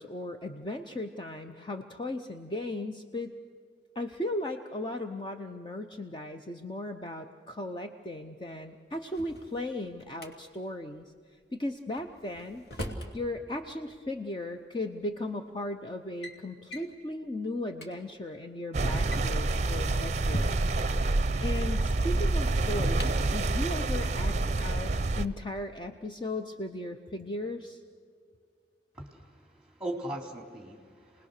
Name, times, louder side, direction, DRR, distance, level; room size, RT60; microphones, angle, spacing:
voice 1, 0.0-3.3 3.9-11.1 11.5-12.6 13.1-20.6 21.4-27.8, left 1 dB, 25° left, 5 dB, 0.7 m, -36 dB
Drawer open or close, 8.9-10.3 12.0-13.1 14.4-14.5 15.3-15.6 15.9-16.4 16.7-17.0 17.4-17.5 17.7-17.9 18.9-20.9 22.0-23.4, equal, 65° left, 2.7 m, -40 dB
sound 1, 18.7-25.2, right 2 dB, 40° right, 0.7 m, -27 dB
voice 2, 28.9-31.3, right 1 dB, 5° right, 2 dB, 3.1 m, -39 dB
28.5 x 20.0 x 6.6 m, 2.1 s
head